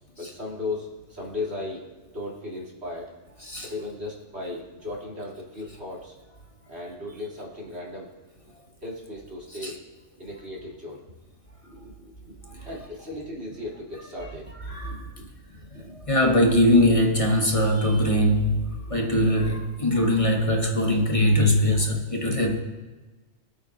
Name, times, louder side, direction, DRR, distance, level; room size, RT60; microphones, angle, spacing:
voice 1, 0.2-1.8 2.1-3.1 3.6-6.2 6.7-8.1 8.8-9.8 10.2-11.0 11.6-15.3 15.7-16.0 18.8-18.9 20.7-20.8, left 2 dB, 60° right, -5 dB, 3.7 m, -36 dB
voice 2, 14.7-15.1 15.7-18.6 18.9-22.6, left 1 dB, 30° left, 2 dB, 1.2 m, -21 dB
26.0 x 8.8 x 2.8 m, 1.2 s
omnidirectional pair, 1.3 m